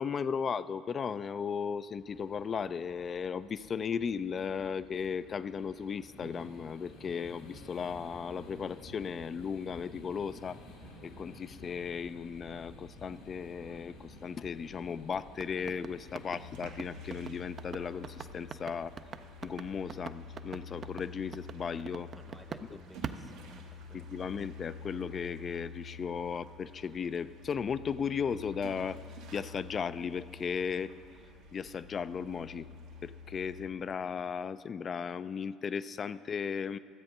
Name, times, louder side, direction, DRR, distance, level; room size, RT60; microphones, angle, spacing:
voice 1, 0.0-10.6 11.0-18.9 19.4-22.1 23.9-29.0 29.3-30.9 31.5-32.7 33.0-36.8, left 6 dB, 45° left, 15 dB, 0.4 m, -36 dB
sound 1, 2.0-21.0, left 1 dB, 85° left, 1.9 m, -53 dB
sound 2, 15.3-22.7 23.0-24.1, right 7 dB, 45° right, 0.5 m, -42 dB
sound 3, 16.3-33.7, left 4 dB, 80° right, 1.2 m, -48 dB
voice 2, 22.1-24.5, left 1 dB, 5° left, 9 dB, 0.8 m, -56 dB
12.5 x 7.8 x 5.4 m, 2.2 s
hypercardioid pair, 65°, 0 cm